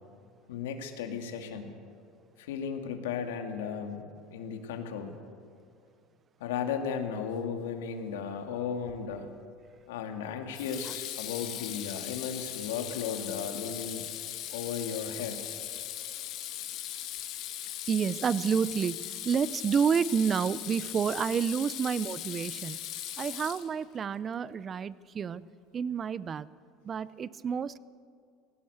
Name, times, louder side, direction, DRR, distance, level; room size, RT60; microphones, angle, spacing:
voice 1, 0.5-1.7 2.4-5.2 6.4-9.3 9.9-14.1 14.5-15.4, left 7 dB, 90° left, 5 dB, 2.3 m, -35 dB
Water tap faucet / Sink (filling or washing), 8.9-9.2 10.5-24.0, left 12 dB, 60° left, 2.4 m, -39 dB
voice 2, 17.9-22.8 23.2-25.4 25.7-26.5 26.9-27.8, right 7 dB, 35° right, 19 dB, 0.6 m, -29 dB
19.5 x 17.0 x 8.1 m, 2.3 s
supercardioid pair, 100°, 0 cm